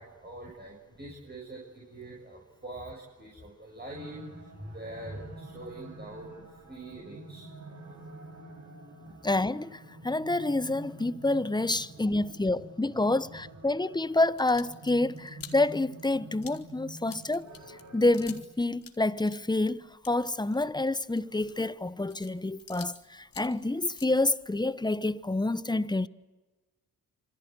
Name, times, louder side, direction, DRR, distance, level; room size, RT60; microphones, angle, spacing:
voice 1, 0.0-7.5 8.0-8.1 9.0-9.1 11.9-12.0, right 1 dB, 20° right, 7.7 m, -44 dB
sound 1, 3.9-18.4, right 1 dB, 40° right, 5.7 m, -48 dB
voice 2, 9.2-26.1, left 2 dB, 10° left, 1.1 m, -28 dB
sound 2, 14.2-18.5 18.8-23.0 23.2-24.7, left 7 dB, 50° left, 3.1 m, -50 dB
26.5 x 25.5 x 8.2 m
hypercardioid pair, 45°, 44 cm